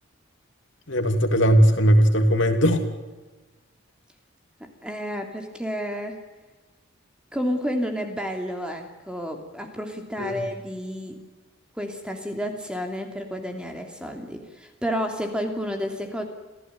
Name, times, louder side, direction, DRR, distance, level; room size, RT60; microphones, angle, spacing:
voice 1, 0.9-2.8 10.2-10.4, equal, 60° left, 6 dB, 2.9 m, -18 dB
voice 2, 4.8-6.2 7.3-11.2 11.8-16.2, equal, 5° right, 4 dB, 2.8 m, -30 dB
27.0 x 16.0 x 9.3 m, 1.2 s
head